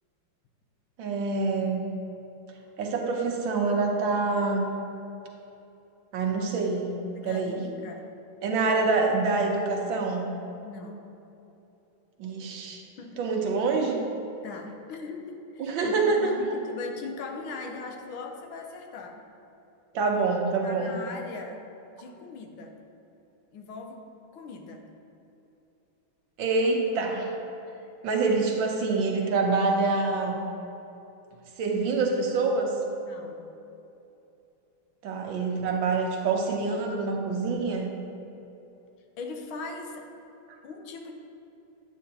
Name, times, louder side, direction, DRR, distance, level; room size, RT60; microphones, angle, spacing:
voice 1, 1.0-1.9 2.8-4.6 6.1-6.9 7.2-7.6 8.4-10.3 12.2-12.8 13.2-14.1 15.6-16.3 19.9-21.0 26.4-27.3 28.0-30.4 31.6-32.8 35.0-37.9, right 3 dB, 70° right, 2 dB, 1.6 m, -26 dB
voice 2, 7.1-8.1 10.6-11.1 12.9-13.2 14.4-19.2 20.6-21.6 21.9-22.8 23.5-24.0 24.3-24.9 33.0-33.5 39.2-40.1 40.6-41.1, left 3 dB, 85° left, 3 dB, 1.6 m, -40 dB
8.9 x 8.4 x 2.8 m, 2.8 s
omnidirectional pair, 2.2 m